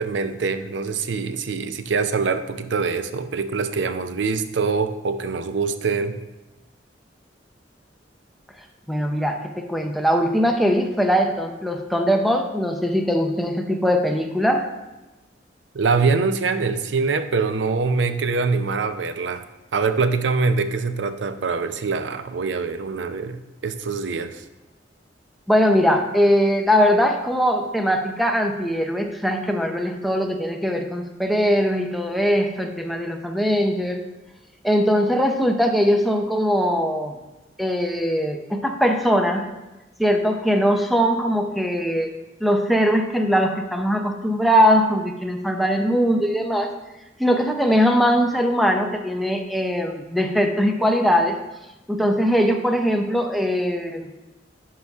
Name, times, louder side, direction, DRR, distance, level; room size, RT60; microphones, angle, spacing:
voice 1, 0.0-6.2 15.7-19.4 19.7-24.4, right 4 dB, 85° right, 10 dB, 0.5 m, -24 dB
voice 2, 8.9-14.7 25.5-34.0 34.6-37.2 37.6-39.5 40.0-42.1 42.4-46.7 47.2-51.4 51.9-54.1, equal, ahead, 4 dB, 0.6 m, -21 dB
11.0 x 4.7 x 3.5 m, 1.1 s
head